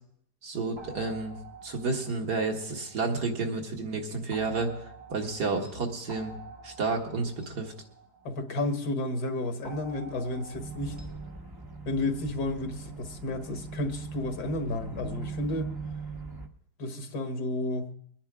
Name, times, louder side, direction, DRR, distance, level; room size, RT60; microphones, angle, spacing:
voice 1, 0.4-1.4 1.6-4.7 5.1-6.3 6.6-7.7, right 3 dB, 80° right, 2.4 m, -30 dB
sound 1, 0.8-3.5 4.3-8.9 9.6-11.4, right 2 dB, 40° right, 2.3 m, -48 dB
voice 2, 8.2-11.0 11.9-15.7 16.8-17.9, left 2 dB, 85° left, 2.0 m, -32 dB
sound 2, 10.5-16.5, right 4 dB, 20° right, 0.6 m, -40 dB
23.5 x 10.0 x 3.7 m
omnidirectional pair, 1.7 m